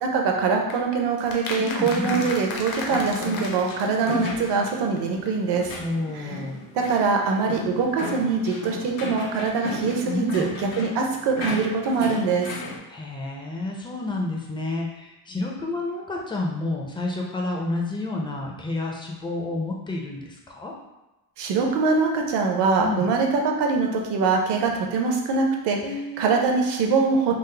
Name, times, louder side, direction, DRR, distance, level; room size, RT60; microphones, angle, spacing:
voice 1, 0.0-5.7 6.1-6.4 6.9-12.5 21.4-25.8 26.2-27.3, right 4 dB, 65° right, 2 dB, 0.7 m, -23 dB
sound 1, 0.7-4.7 5.0-5.1 5.3-5.4, left 3 dB, 50° left, 0.7 m, -34 dB
voice 2, 1.6-2.3 5.8-6.6 10.1-10.7 12.9-20.7 22.8-23.1 25.8-26.3, left 2 dB, 10° left, -1 dB, 0.4 m, -30 dB
sound 2, 2.0-12.8, left 2 dB, 80° left, 0.9 m, -35 dB
3.6 x 2.0 x 3.2 m, 1.0 s
cardioid pair, 130°, 46 cm